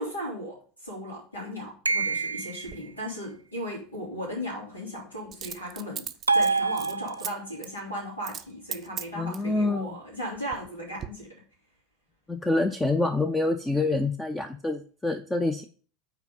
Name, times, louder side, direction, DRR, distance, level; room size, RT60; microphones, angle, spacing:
voice 1, 0.0-6.1 6.3-11.3, equal, 90° left, -4 dB, 3.3 m, -36 dB
sound 1, 1.8-2.8 6.3-7.5, right 4 dB, 85° right, 0.3 m, -26 dB
Coin (dropping), 2.6-2.8 5.3-7.3 7.6-7.8 8.2-8.5 8.7-9.5 10.1-10.7 11.0-11.1, right 9 dB, 35° right, 0.5 m, -37 dB
voice 2, 9.1-9.9 12.3-15.6, left 2 dB, 10° left, 7 dB, 0.6 m, -26 dB
5.9 x 4.5 x 5.4 m, 0.42 s
figure-of-eight pair, 80°, 0 cm